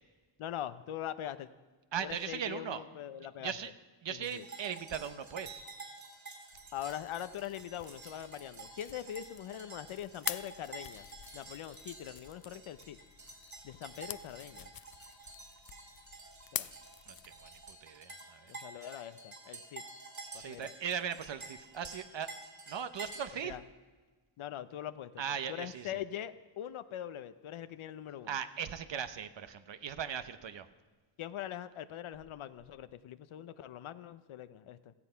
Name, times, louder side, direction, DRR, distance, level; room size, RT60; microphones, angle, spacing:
voice 1, 0.4-1.5 2.0-3.6 4.1-4.5 6.7-11.1 11.3-13.0 13.6-14.7 16.5-16.7 18.5-19.8 20.3-20.7 23.4-23.6 24.4-28.4 31.2-34.9, left 11 dB, 85° left, 12 dB, 0.7 m, -42 dB
voice 2, 1.9-2.8 3.4-3.7 4.0-5.6 16.6-16.7 17.1-17.2 17.4-18.5 20.4-22.3 22.7-23.5 25.2-25.9 28.3-30.7, right 8 dB, 65° right, 11 dB, 0.9 m, -38 dB
sound 1, 4.2-23.2, right 3 dB, 35° right, 3.5 m, -50 dB
sound 2, 6.5-17.7, left 10 dB, 50° left, 0.6 m, -47 dB
17.0 x 14.0 x 5.6 m, 1.3 s
wide cardioid pair, 110°, 48 cm